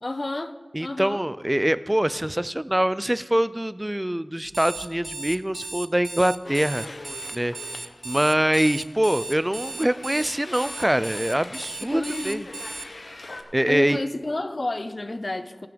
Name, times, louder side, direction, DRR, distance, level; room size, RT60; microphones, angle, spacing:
voice 1, 0.0-1.2 11.8-12.4 13.6-15.7, left 2 dB, 50° left, 11 dB, 0.5 m, -30 dB
voice 2, 0.7-6.9 7.3-12.5 12.7-13.0 13.5-14.0, right 1 dB, 20° right, 16 dB, 0.4 m, -24 dB
Alarm, 4.5-12.9, right 3 dB, 80° right, 0.4 m, -36 dB
sound 1, 6.4-13.4, left 2 dB, 85° left, 0.9 m, -43 dB
17.5 x 5.9 x 5.2 m, 1.4 s
wide cardioid pair, 40°, 0 cm